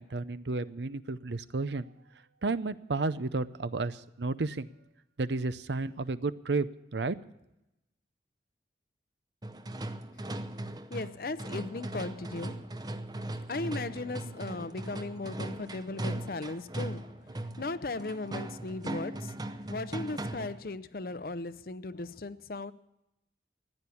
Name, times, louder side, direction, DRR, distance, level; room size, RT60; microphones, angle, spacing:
voice 1, 0.0-1.9 2.4-4.7 5.2-7.2, right 3 dB, 80° right, 15 dB, 0.7 m, -32 dB
sound 1, 9.4-20.7, right 1 dB, 20° right, 0.7 m, -39 dB
voice 2, 10.9-12.7 13.2-22.7, left 3 dB, 55° left, 15 dB, 0.6 m, -37 dB
15.0 x 9.9 x 8.5 m, 0.90 s
head